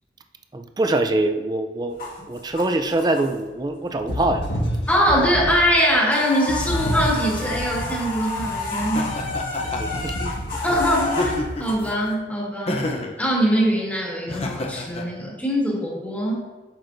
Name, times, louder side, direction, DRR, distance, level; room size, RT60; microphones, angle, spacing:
voice 1, 0.5-2.0 2.3-4.5 9.6-10.6, right 2 dB, 25° right, 6 dB, 0.4 m, -24 dB
sound 1, 1.9-3.7 4.1-4.9 5.2-5.4 5.6-11.7, left 3 dB, 55° left, 1.8 m, -31 dB
sound 2, 4.0-5.7 6.5-11.9, equal, 90° left, 1.5 m, -29 dB
voice 2, 4.9-9.1 10.6-11.3 11.6-12.9 13.2-16.5, equal, 10° left, -4 dB, 1.6 m, -22 dB
Laughter, 8.9-10.0 11.0-11.8 12.7-13.2 14.3-15.1, left 2 dB, 35° left, 0.7 m, -28 dB
8.6 x 6.3 x 2.6 m, 1.2 s
head